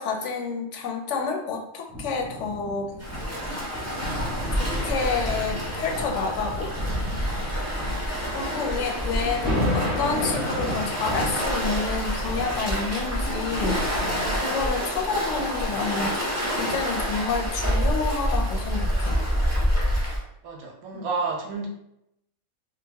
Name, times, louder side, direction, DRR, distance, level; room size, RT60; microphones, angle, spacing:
voice 1, 0.0-2.9 4.5-6.7 8.3-19.2 20.9-21.1, left 4 dB, 65° left, 2 dB, 0.8 m, -29 dB
sound 1, 1.9-14.7 15.4-15.5, equal, ahead, 1.1 m, -33 dB
Waves surf, 3.0-20.2, equal, 15° right, 0.5 m, -27 dB
voice 2, 20.4-21.7, right 4 dB, 80° right, 0 dB, 1.2 m, -31 dB
3.8 x 2.2 x 2.7 m, 0.82 s
omnidirectional pair, 1.4 m